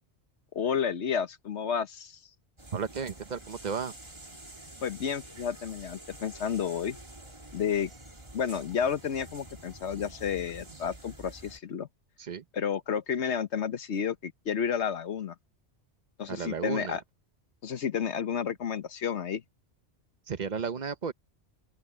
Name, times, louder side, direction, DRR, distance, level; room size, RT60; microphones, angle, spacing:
voice 1, 0.5-2.2 4.8-7.0 7.5-7.9 8.3-11.9 12.5-15.3 16.2-17.0 17.6-19.4, left 7 dB, 75° left, 1.3 m, -31 dB
sound 1, 2.6-11.6, right 1 dB, 25° right, 2.3 m, -48 dB
voice 2, 2.7-3.9 12.2-12.4 16.3-17.0 20.3-21.1, right 6 dB, 45° right, 1.0 m, -33 dB
open air
omnidirectional pair, 1.2 m